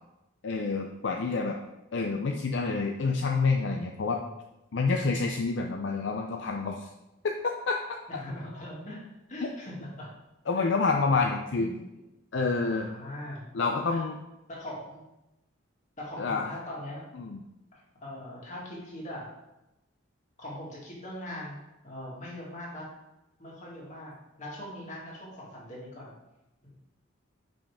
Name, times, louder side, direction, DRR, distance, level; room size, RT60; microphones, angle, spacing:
voice 1, 0.4-1.6 1.9-4.2 4.7-6.9 7.2-7.4 7.7-7.8 9.4-9.5 10.5-11.7 12.3-12.9 13.5-14.2 16.2-16.5 17.2-17.4, left 4 dB, 65° left, 2 dB, 0.5 m, -28 dB
voice 2, 8.1-9.0 9.3-10.1 10.6-10.7 11.1-11.3 11.6-11.8 12.7-13.5 13.9-14.0 14.5-15.0 16.0-17.0 17.7-19.3 20.4-21.6 21.8-22.9 23.4-26.1 26.6-26.8, left 1 dB, 40° left, -5 dB, 2.2 m, -41 dB
5.6 x 5.2 x 5.0 m, 0.94 s
head